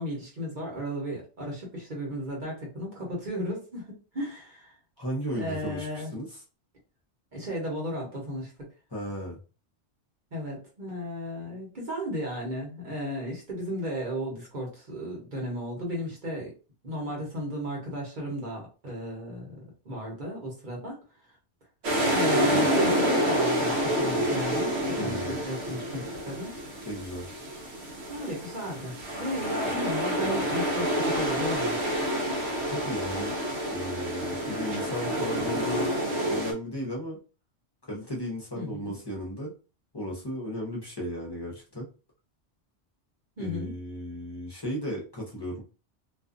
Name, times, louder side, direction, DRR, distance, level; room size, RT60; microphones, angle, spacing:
voice 1, 0.0-4.7 5.3-6.1 7.3-8.5 10.3-16.5 16.8-19.6 19.8-21.0 22.1-26.6 28.1-31.8 38.5-39.0 43.4-43.7, equal, 45° right, -2 dB, 1.0 m, -35 dB
voice 2, 5.0-6.3 8.9-9.4 25.0-25.4 26.9-27.3 32.7-33.4 33.7-36.0 36.3-37.2 37.9-39.5 39.9-41.9 43.4-45.6, equal, 25° left, -3 dB, 0.7 m, -35 dB
sound 1, 21.8-36.5, equal, 70° right, 0.9 m, -28 dB
2.5 x 2.3 x 2.4 m, 0.33 s
omnidirectional pair, 1.2 m